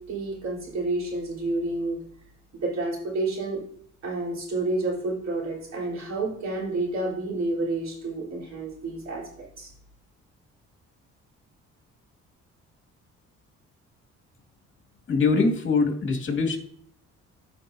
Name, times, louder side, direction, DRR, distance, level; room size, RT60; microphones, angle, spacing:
voice 1, 0.1-2.0 2.6-3.6 4.0-9.2 9.6-9.7, right 2 dB, 60° right, -3 dB, 4.0 m, -29 dB
voice 2, 15.1-16.6, left 4 dB, 40° left, 4 dB, 2.2 m, -23 dB
14.5 x 5.5 x 2.7 m, 0.62 s
cardioid pair, 90°, 30 cm